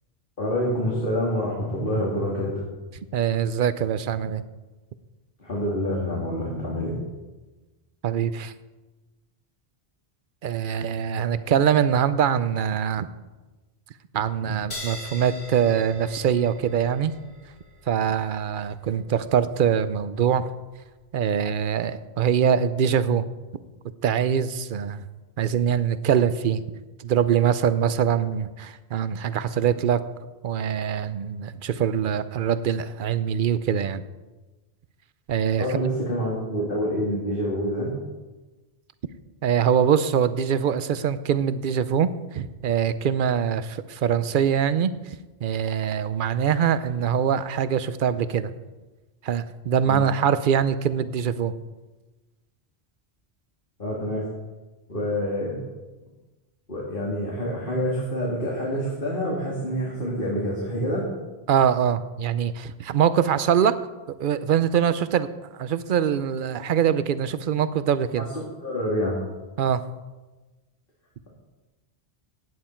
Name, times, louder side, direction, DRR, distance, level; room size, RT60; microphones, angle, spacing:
voice 1, 0.4-2.6 5.4-6.9 35.6-38.0 49.9-50.0 53.8-54.3 54.9-55.6 56.7-61.1 68.2-68.3 68.6-69.2, equal, 55° left, -4 dB, 2.4 m, -27 dB
voice 2, 3.1-4.4 8.0-8.5 10.4-13.1 14.1-17.1 17.9-20.5 21.1-23.3 24.0-25.1 25.4-26.6 27.0-30.0 30.4-34.0 35.3-35.8 39.4-44.9 45.4-48.5 49.2-51.5 61.5-63.8 64.2-65.3 65.5-68.3 69.6-69.8, right 8 dB, 55° right, 14 dB, 0.7 m, -23 dB
sound 1, 14.7-21.7, left 1 dB, 75° left, 2.4 m, -44 dB
16.0 x 9.4 x 4.4 m, 1.2 s
omnidirectional pair, 1.1 m